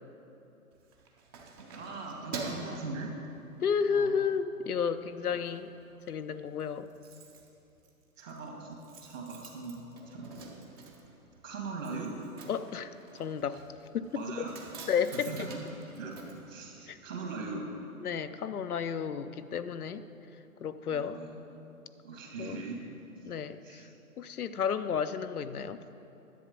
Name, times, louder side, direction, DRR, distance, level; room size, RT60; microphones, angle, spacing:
Keys jangling, 0.7-3.8 4.3-4.5 4.9-5.6 5.8-5.9 6.2-6.3 6.4-17.3 17.5-17.6, right 3 dB, 15° right, 0.5 m, -46 dB
voice 1, 1.7-3.1 3.9-4.1 5.3-5.4 8.2-10.3 11.4-12.1 14.1-14.5 15.3-15.5 16.0-16.1 16.5-17.7 20.9-21.4 22.0-22.8 23.6-23.9, right 3 dB, 60° right, 0 dB, 2.2 m, -40 dB
voice 2, 3.6-5.7 6.1-6.9 12.5-13.6 13.9-14.5 14.9-15.5 16.9-17.0 18.0-20.0 20.6-21.2 22.4-22.6 23.2-23.9 24.2-25.8, left 7 dB, 85° left, 11 dB, 0.6 m, -32 dB
10.5 x 7.7 x 5.1 m, 2.8 s
figure-of-eight pair, 120°, 43 cm